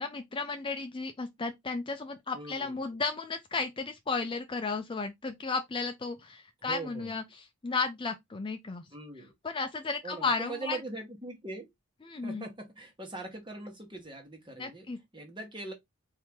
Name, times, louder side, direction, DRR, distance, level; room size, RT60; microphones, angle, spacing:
voice 1, 0.0-8.9 9.4-10.8 12.1-12.5 14.6-15.0, left 4 dB, 25° left, 0.4 m, -34 dB
voice 2, 2.3-2.8 6.6-7.2 8.9-9.3 10.0-11.7 12.2-14.9 15.1-15.7, right 2 dB, 25° right, 1.3 m, -41 dB
4.3 x 2.8 x 3.5 m
head